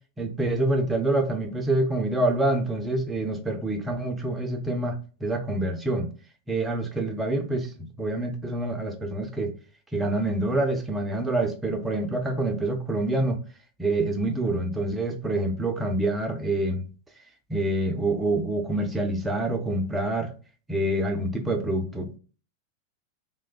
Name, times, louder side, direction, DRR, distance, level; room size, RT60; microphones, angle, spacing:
voice 1, 0.2-4.9 5.2-6.1 6.5-9.5 9.9-13.4 13.8-16.8 17.5-20.3 20.7-22.2, right 2 dB, 10° right, 0.5 m, -26 dB
3.2 x 2.1 x 2.3 m
figure-of-eight pair, 90°, 0 cm